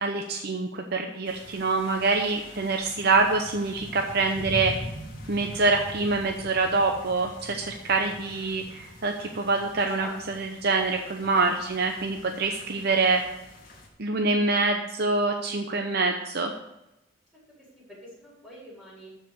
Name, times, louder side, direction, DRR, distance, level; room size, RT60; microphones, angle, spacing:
voice 1, 0.0-4.7 5.3-13.2 14.0-16.5, right 3 dB, 55° right, 3 dB, 0.8 m, -25 dB
sound 1, 1.2-13.9, left 1 dB, 45° left, 2.4 m, -43 dB
voice 2, 10.0-10.6 17.3-17.4 17.7-19.1, equal, 5° left, -6 dB, 4.6 m, -45 dB
12.5 x 5.0 x 6.7 m, 0.90 s
head